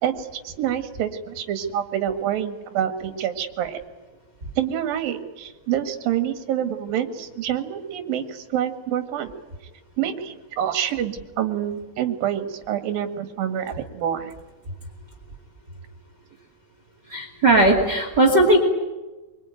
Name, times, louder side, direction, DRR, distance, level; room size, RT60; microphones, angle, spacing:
voice 1, 0.0-3.8 4.6-9.3 10.0-14.3, right 10 dB, 70° right, 6 dB, 3.4 m, -27 dB
voice 2, 17.1-18.6, right 2 dB, 30° right, 4 dB, 2.8 m, -17 dB
24.0 x 24.0 x 9.2 m, 1.2 s
omnidirectional pair, 4.4 m